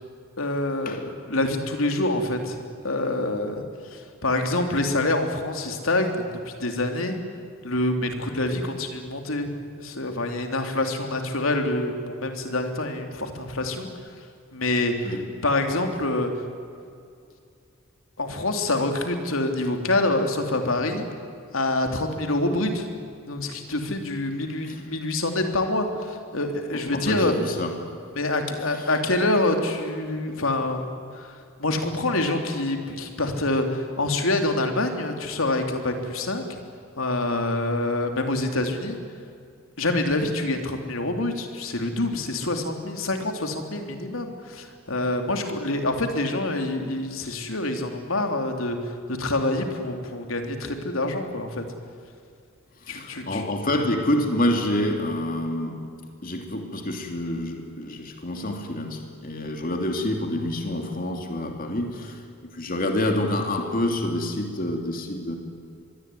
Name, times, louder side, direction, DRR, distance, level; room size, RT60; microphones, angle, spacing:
voice 1, 0.4-3.6 3.9-7.2 7.6-9.5 9.8-13.9 14.5-15.1 15.4-16.3 18.2-21.1 21.5-22.9 23.3-27.4 28.1-30.8 31.1-31.3 31.6-36.6 37.0-39.0 39.8-51.6 52.9-53.4, left 2 dB, 75° left, 4 dB, 3.5 m, -26 dB
voice 2, 26.9-27.8 28.7-28.9 52.8-55.9 56.2-65.4, left 1 dB, 45° left, 3 dB, 2.9 m, -27 dB
25.5 x 22.0 x 9.6 m, 2.4 s
head